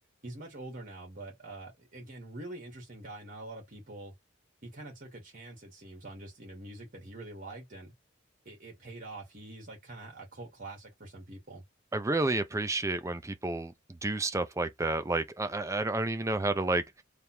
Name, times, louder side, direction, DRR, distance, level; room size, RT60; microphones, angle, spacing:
voice 1, 0.2-4.1 4.6-7.9 8.4-11.6, right 2 dB, 45° right, 1.6 m, -45 dB
voice 2, 11.9-13.7 14.0-17.0, right 2 dB, 15° right, 0.5 m, -30 dB
3.5 x 2.2 x 4.3 m
head